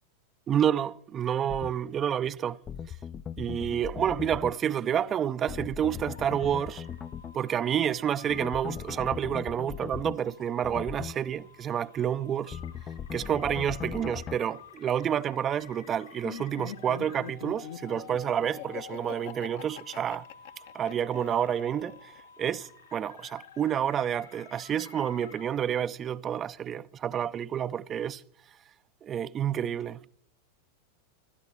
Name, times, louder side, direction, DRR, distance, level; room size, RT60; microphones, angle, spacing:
voice 1, 0.5-2.6 3.4-6.9 7.3-12.6 13.1-20.2 20.7-22.1 22.4-28.2 29.0-30.0, right 9 dB, 25° right, 0.5 m, -29 dB
sound 1, 1.5-1.7 2.7-4.6 5.5-7.3 8.3-10.2 10.6-11.2 12.5-14.4, left 8 dB, 25° left, 0.5 m, -38 dB
sound 2, 6.1-25.6, left 7 dB, 75° left, 2.8 m, -51 dB
Laughter, 16.2-22.2, left 10 dB, 55° left, 1.0 m, -43 dB
26.0 x 13.0 x 3.4 m
figure-of-eight pair, 90°, 0 cm